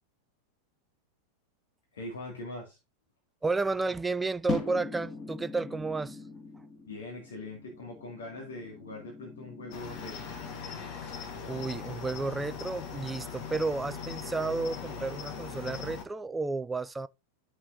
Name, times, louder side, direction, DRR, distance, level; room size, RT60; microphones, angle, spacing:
voice 1, 1.9-2.8 6.9-10.4, left 2 dB, 65° left, 2.2 m, -42 dB
voice 2, 3.4-6.2 11.5-17.1, right 3 dB, 10° right, 0.3 m, -32 dB
sound 1, 4.5-10.7, left 4 dB, 20° left, 2.1 m, -41 dB
Cricket, 9.7-16.0, left 6 dB, 40° left, 1.5 m, -40 dB
11.0 x 6.1 x 2.7 m
figure-of-eight pair, 90°, 0 cm